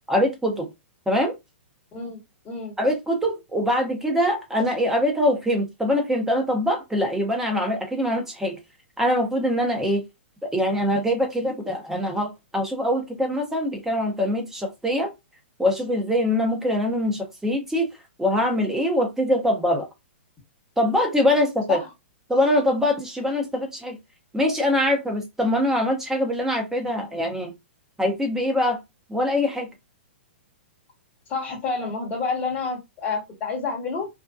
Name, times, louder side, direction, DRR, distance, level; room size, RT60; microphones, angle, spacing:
voice 1, 0.1-0.7 1.1-1.3 2.8-8.6 9.0-10.0 10.4-15.1 15.6-17.9 18.2-19.9 20.8-21.8 22.3-24.0 24.3-27.5 28.0-28.8 29.1-29.7, left 1 dB, 5° right, 0.8 m, -23 dB
voice 2, 31.3-34.1, left 4 dB, 25° left, 1.1 m, -29 dB
2.6 x 2.2 x 2.3 m
hypercardioid pair, 120°, 7 cm